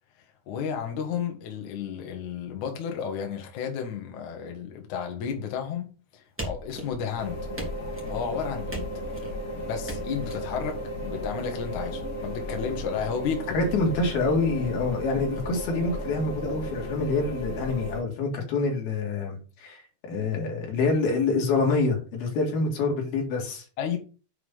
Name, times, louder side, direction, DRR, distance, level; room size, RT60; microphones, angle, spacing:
voice 1, 0.5-7.4 8.1-8.9 9.7-13.6 23.8-24.0, left 7 dB, 80° left, 1.7 m, -32 dB
sound 1, 6.4-7.2 7.6-8.2 8.7-9.3 9.9-10.4, right 1 dB, 5° right, 1.0 m, -37 dB
sound 2, 7.2-18.0, equal, 35° left, 2.4 m, -34 dB
voice 2, 13.5-19.8 20.1-23.6, left 3 dB, 55° left, 3.5 m, -26 dB
8.4 x 5.0 x 5.4 m
omnidirectional pair, 5.9 m